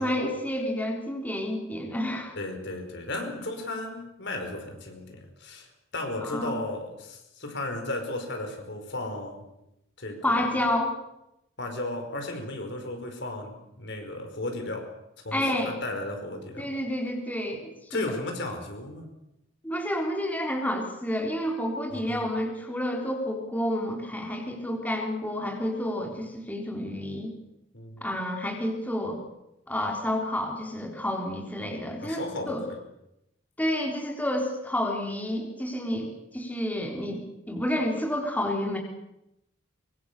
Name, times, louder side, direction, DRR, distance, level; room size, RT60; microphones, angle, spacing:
voice 1, 0.0-2.4 6.2-6.6 10.2-10.9 15.3-15.7 16.6-18.1 19.6-27.3 28.0-29.2 29.7-32.7 33.6-38.8, left 1 dB, 10° left, 0 dB, 3.7 m, -30 dB
voice 2, 2.3-9.5 10.0-10.4 11.6-14.9 15.2-16.7 17.9-19.1 21.9-22.2 27.7-28.1 32.0-32.8, left 2 dB, 60° left, 4 dB, 5.1 m, -35 dB
24.0 x 23.5 x 6.9 m, 0.84 s
head